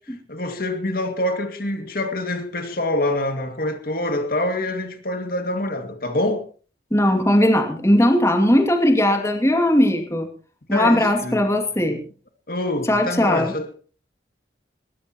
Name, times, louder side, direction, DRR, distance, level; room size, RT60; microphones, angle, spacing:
voice 1, 0.3-6.5 10.7-11.5 12.5-13.7, left 1 dB, 55° left, 2.3 m, -25 dB
voice 2, 6.9-10.3 10.7-12.0 12.9-13.5, left 1 dB, 15° left, 2.6 m, -18 dB
21.5 x 19.5 x 3.0 m
head